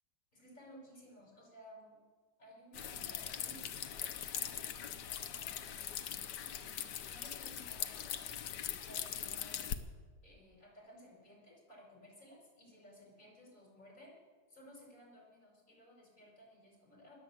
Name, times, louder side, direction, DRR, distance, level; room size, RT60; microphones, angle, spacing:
voice 1, 0.3-2.0 2.4-5.8 6.4-8.2 8.8-9.8 10.2-14.1 14.5-17.2, equal, 40° left, -2 dB, 5.8 m, -58 dB
sound 1, 2.7-9.8, left 9 dB, 70° left, 1.4 m, -41 dB
20.5 x 7.6 x 8.3 m, 1.5 s
omnidirectional pair, 2.0 m